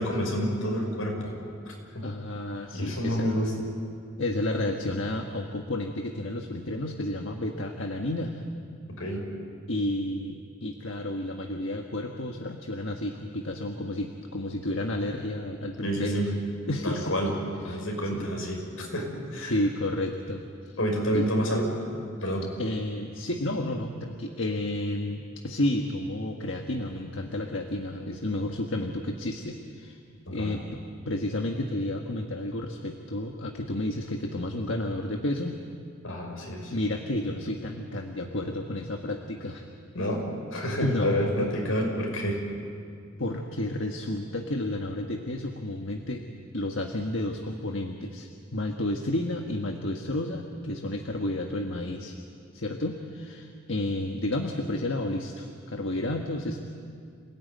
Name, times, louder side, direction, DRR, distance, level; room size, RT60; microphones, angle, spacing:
voice 1, 0.0-1.3 1.7-2.1 2.7-3.5 8.9-9.2 15.8-16.3 16.8-17.3 17.6-19.5 20.8-21.8 22.2-22.5 30.3-30.5 36.0-36.7 39.9-42.4, equal, 85° left, 1 dB, 5.9 m, -29 dB
voice 2, 2.0-3.3 4.2-8.4 9.7-16.3 16.7-17.3 17.6-17.9 18.1-18.3 19.4-20.8 21.1-21.3 22.6-30.0 30.3-35.6 36.6-39.7 40.8-41.3 43.2-46.2 46.5-52.2 52.5-56.6, left 1 dB, 65° left, 3 dB, 1.4 m, -31 dB
27.0 x 17.5 x 9.4 m, 2.3 s
head